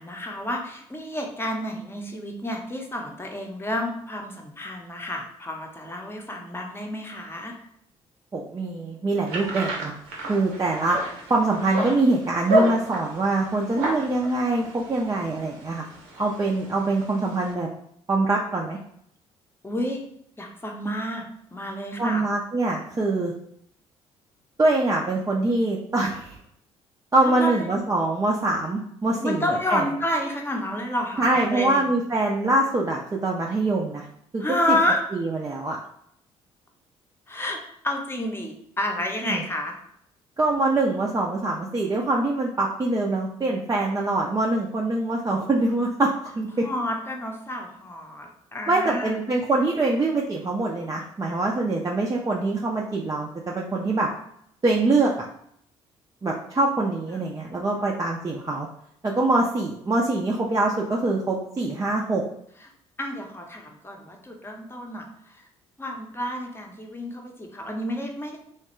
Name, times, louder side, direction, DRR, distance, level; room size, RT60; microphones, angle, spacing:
voice 1, 0.0-7.5 19.6-20.0 20.4-22.2 27.2-27.7 29.2-31.9 34.4-35.0 37.3-37.6 37.8-39.7 46.6-49.2 57.1-57.2 63.0-65.4 65.8-68.4, left 1 dB, 15° left, 1 dB, 0.8 m, -30 dB
voice 2, 8.3-9.9 10.3-11.0 11.3-15.8 16.2-17.7 18.1-18.8 22.0-23.3 24.6-26.4 27.1-29.8 31.2-34.1 34.3-34.8 35.1-35.8 39.3-39.4 40.4-46.6 48.7-54.1 54.6-55.1 56.2-58.7 59.0-62.2, right 2 dB, 25° right, -2 dB, 0.5 m, -24 dB
sound 1, 9.3-17.5, right 1 dB, 70° right, 0.7 m, -31 dB
3.1 x 2.2 x 3.0 m, 0.69 s
hypercardioid pair, 50°, 15 cm